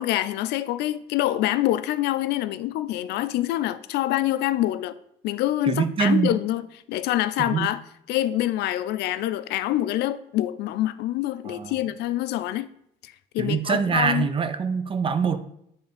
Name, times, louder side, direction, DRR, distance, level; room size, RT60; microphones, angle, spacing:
voice 1, 0.0-5.0 5.2-6.6 6.9-7.8 8.1-12.7 13.0-14.3, left 14 dB, 75° left, 0.4 m, -26 dB
voice 2, 5.7-6.3 7.5-7.7 11.5-11.7 13.4-15.4, right 6 dB, 30° right, 0.6 m, -24 dB
8.5 x 3.4 x 4.0 m
cardioid pair, 110°, 17 cm